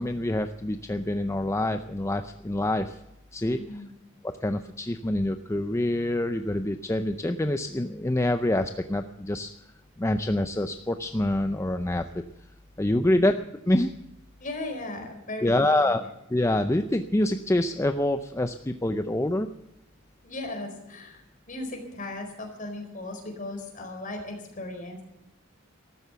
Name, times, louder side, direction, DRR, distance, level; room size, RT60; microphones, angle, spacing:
voice 1, 0.0-3.0 3.3-3.6 4.2-9.5 10.0-12.1 12.8-13.4 13.7-13.9 15.4-16.0 16.3-19.5, left 1 dB, 15° left, 8 dB, 0.5 m, -26 dB
voice 2, 3.5-3.9 14.4-15.9 20.2-25.0, left 2 dB, 40° left, 4 dB, 4.3 m, -37 dB
14.0 x 12.5 x 6.8 m, 0.90 s
head